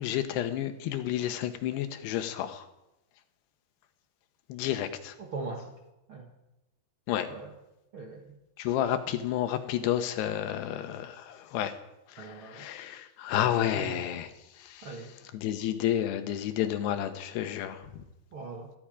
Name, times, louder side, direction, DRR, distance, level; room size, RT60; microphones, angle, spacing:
voice 1, 0.0-2.7 4.5-5.2 7.1-7.3 8.6-11.8 12.1-14.3 14.5-15.0 15.3-18.0, left 11 dB, 80° left, 9 dB, 3.1 m, -31 dB
voice 2, 5.2-5.7 6.1-6.3 7.3-7.5 7.9-8.4 10.6-10.7 12.2-12.7 13.7-14.0 14.8-15.1 18.3-18.7, right 3 dB, 70° right, 1 dB, 1.2 m, -40 dB
18.0 x 14.5 x 5.0 m, 0.94 s
omnidirectional pair, 4.8 m